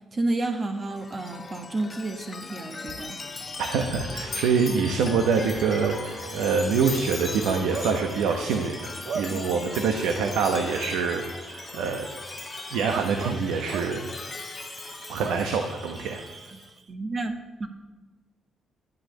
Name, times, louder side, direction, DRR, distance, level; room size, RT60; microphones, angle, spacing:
voice 1, 0.1-3.2 9.3-9.4 16.5-16.6 16.9-17.7, right 2 dB, 30° right, 6 dB, 1.4 m, -30 dB
Chime, 0.8-16.7, left 4 dB, 30° left, 0.7 m, -39 dB
Bark / Cricket, 3.5-16.8, right 6 dB, 60° right, 0.6 m, -40 dB
voice 2, 3.6-12.1 12.7-14.1 15.1-16.2, right 5 dB, 90° right, 5 dB, 1.0 m, -25 dB
11.0 x 7.9 x 6.6 m, 1.2 s
cardioid pair, 90°, 0 cm